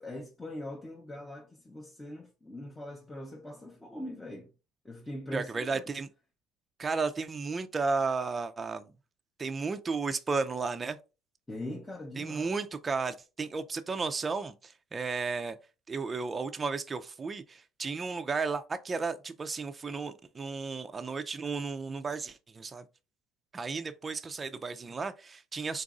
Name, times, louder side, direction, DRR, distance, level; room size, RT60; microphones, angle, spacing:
voice 1, 0.0-4.5 4.8-5.8 11.5-12.5, left 1 dB, 10° left, 0.7 m, -42 dB
voice 2, 5.3-6.1 6.8-8.9 9.4-11.0 12.2-15.6 15.9-22.8 23.5-25.8, right 4 dB, 25° right, 0.4 m, -33 dB
3.9 x 2.5 x 3.6 m
cardioid pair, 125°, 0 cm